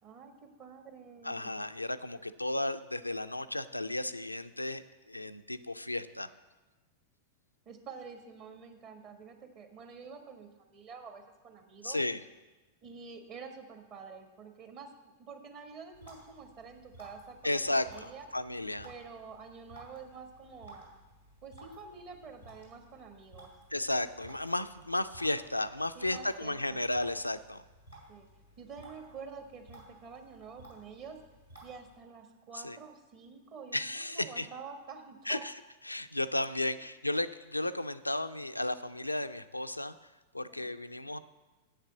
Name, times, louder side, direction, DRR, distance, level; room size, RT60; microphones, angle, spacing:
voice 1, 0.0-1.5 7.6-12.0 12.8-18.3 18.8-20.9 21.4-23.5 25.9-26.9 28.1-28.3 28.6-31.2 31.6-35.5 36.5-36.8 40.5-40.8, right 5 dB, 35° right, 6 dB, 1.4 m, -48 dB
voice 2, 1.2-6.3 11.8-12.2 17.4-18.9 23.7-27.6 32.6-32.8 33.7-34.5 35.3-35.5 35.9-39.9 40.3-41.2, left 1 dB, 85° left, 10 dB, 0.4 m, -34 dB
sound 1, 15.9-32.0, right 1 dB, 85° right, 3.4 m, -56 dB
7.8 x 6.7 x 8.2 m, 1.2 s
figure-of-eight pair, 95°, 0 cm